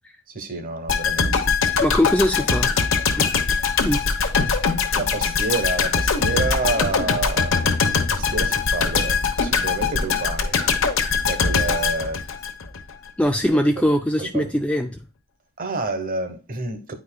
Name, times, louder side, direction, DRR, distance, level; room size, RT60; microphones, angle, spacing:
voice 1, 0.3-1.3 4.9-7.6 8.1-10.7 11.3-12.2 13.8-13.9 14.2-14.5 15.6-16.9, right 3 dB, 40° right, 1.0 m, -29 dB
sound 1, 0.9-12.9 13.2-13.4, left 5 dB, 60° left, 0.9 m, -22 dB
voice 2, 1.8-2.7 3.2-3.3 3.8-4.3 13.2-15.0, equal, 5° left, 0.3 m, -21 dB
9.4 x 4.8 x 2.2 m
head